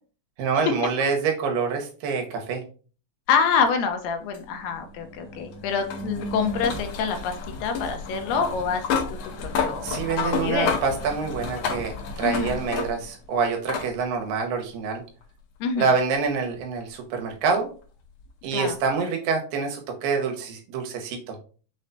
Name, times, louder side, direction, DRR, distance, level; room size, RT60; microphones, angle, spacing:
voice 1, 0.4-2.6 9.8-15.0 15.8-17.7 18.4-21.4, right 5 dB, 85° right, 3 dB, 2.6 m, -26 dB
voice 2, 3.3-9.9 10.2-10.8 12.2-12.6 15.6-15.9 18.5-18.8, left 6 dB, 90° left, 6 dB, 2.4 m, -26 dB
sound 1, 4.3-13.2 13.7-13.9 15.2-15.3 18.2-18.3, left 5 dB, 70° left, 1.6 m, -31 dB
6.1 x 2.2 x 3.9 m, 0.39 s
omnidirectional pair, 4.0 m